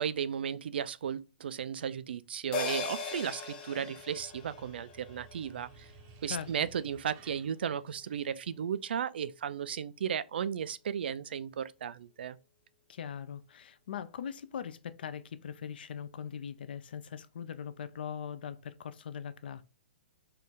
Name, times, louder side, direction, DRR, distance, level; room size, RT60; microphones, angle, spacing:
voice 1, 0.0-5.9 6.2-12.4, right 8 dB, 70° right, 0.4 m, -35 dB
sound 1, 2.5-7.2 7.6-7.7, left 6 dB, 20° left, 0.6 m, -41 dB
sound 2, 3.5-8.8, right 5 dB, 25° right, 0.6 m, -56 dB
voice 2, 12.9-19.6, left 8 dB, 65° left, 0.6 m, -41 dB
4.4 x 2.5 x 3.6 m
hypercardioid pair, 165°, 6 cm